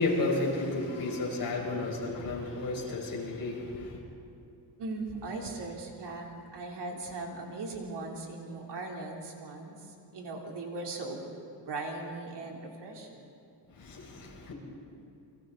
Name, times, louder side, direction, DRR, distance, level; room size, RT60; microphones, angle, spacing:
voice 1, 0.0-4.0 13.7-14.5, left 2 dB, 45° left, -2 dB, 5.4 m, -32 dB
voice 2, 4.8-9.8 10.1-11.3 11.7-13.3, right 2 dB, 60° right, 0 dB, 3.2 m, -39 dB
29.5 x 24.0 x 3.9 m, 2.6 s
cardioid pair, 150°, 46 cm